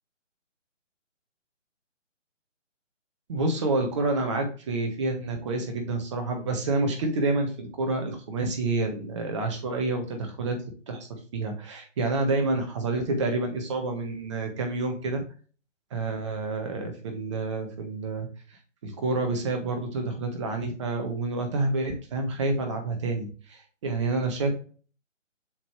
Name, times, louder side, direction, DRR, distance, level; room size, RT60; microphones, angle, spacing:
voice 1, 3.3-10.6 10.9-15.2 15.9-24.5, right 2 dB, 25° right, 4 dB, 1.5 m, -28 dB
7.3 x 5.1 x 3.2 m, 0.38 s
figure-of-eight pair, 150°, 38 cm